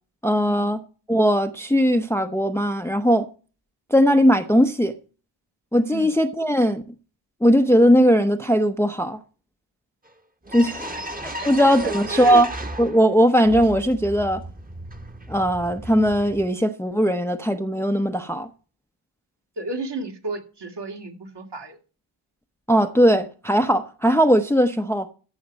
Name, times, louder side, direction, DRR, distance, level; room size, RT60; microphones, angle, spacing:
voice 1, 0.2-0.8 1.1-3.3 3.9-4.9 5.7-6.8 7.4-9.2 10.5-10.9 11.2-12.5 12.8-14.4 15.3-18.5 22.7-25.1, equal, 5° left, 0.7 m, -19 dB
sound 1, 10.1-10.2 10.4-13.1 13.4-16.5, right 1 dB, 15° right, 1.2 m, -35 dB
voice 2, 11.8-12.4 19.6-21.8, right 3 dB, 55° right, 2.2 m, -32 dB
14.5 x 5.9 x 5.2 m
cardioid pair, 80°, 49 cm